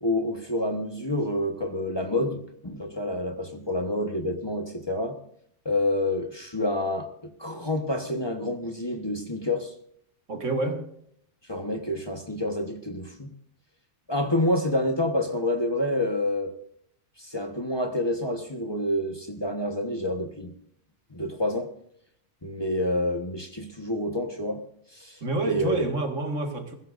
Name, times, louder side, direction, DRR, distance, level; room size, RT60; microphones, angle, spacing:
voice 1, 0.0-5.2 5.6-9.7 11.5-13.3 14.1-16.5 17.2-20.5 21.1-21.7 22.4-24.6 24.9-25.2 25.5-25.9, left 1 dB, 20° left, 5 dB, 1.3 m, -28 dB
voice 2, 10.3-10.9 25.2-26.7, right 3 dB, 85° right, 4 dB, 2.3 m, -28 dB
21.0 x 15.5 x 2.6 m, 0.69 s
omnidirectional pair, 1.3 m